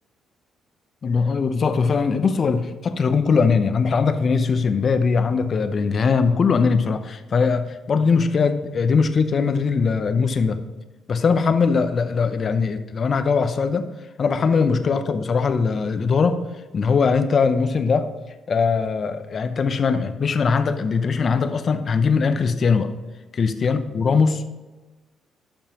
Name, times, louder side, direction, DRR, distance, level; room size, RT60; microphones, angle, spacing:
voice 1, 1.0-10.6 11.1-13.9 14.2-16.4 16.7-18.1 18.5-22.9 23.3-24.4, left 5 dB, 45° left, 10 dB, 0.7 m, -20 dB
12.0 x 5.4 x 3.0 m, 1.2 s
cardioid pair, 90°, 0 cm